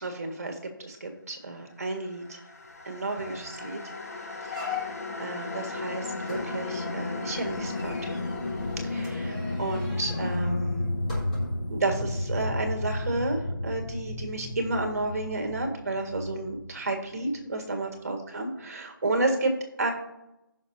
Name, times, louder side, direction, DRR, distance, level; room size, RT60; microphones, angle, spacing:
voice 1, 0.0-2.4 2.8-3.8 4.4-4.6 5.2-8.2 8.8-11.0 11.7-19.9, right 2 dB, 45° right, 3 dB, 1.7 m, -31 dB
sound 1, 2.2-17.4, left 2 dB, 40° left, 1.1 m, -33 dB
sound 2, 2.7-2.8 3.2-3.5 3.9-4.0 4.5-5.2 6.2-11.7 12.3-12.4, left 4 dB, 20° left, 3.8 m, -39 dB
16.5 x 5.8 x 2.7 m, 0.90 s
figure-of-eight pair, 175°, 12 cm